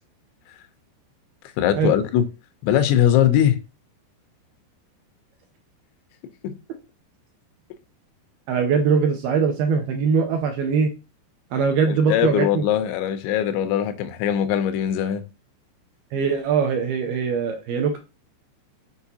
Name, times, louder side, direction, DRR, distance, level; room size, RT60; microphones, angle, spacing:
voice 1, 1.6-2.3 2.6-3.6 6.4-6.6 11.9-15.2, left 10 dB, 90° left, 3.1 m, -21 dB
voice 2, 8.5-10.9 11.5-12.6 16.1-18.0, right 5 dB, 80° right, 2.3 m, -21 dB
8.0 x 4.6 x 2.8 m
omnidirectional pair, 5.1 m